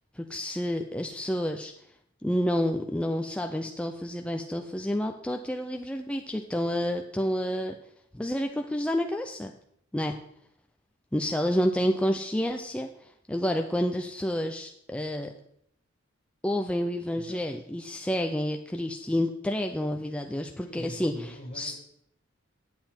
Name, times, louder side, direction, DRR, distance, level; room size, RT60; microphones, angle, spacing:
voice 1, 0.2-1.7 2.2-7.7 8.1-9.5 9.9-10.2 11.1-15.3 16.4-21.7, equal, 5° left, 4 dB, 0.4 m, -29 dB
voice 2, 17.1-17.5 20.6-21.8, equal, 45° left, 0 dB, 1.5 m, -42 dB
9.3 x 7.7 x 4.3 m, 0.71 s
head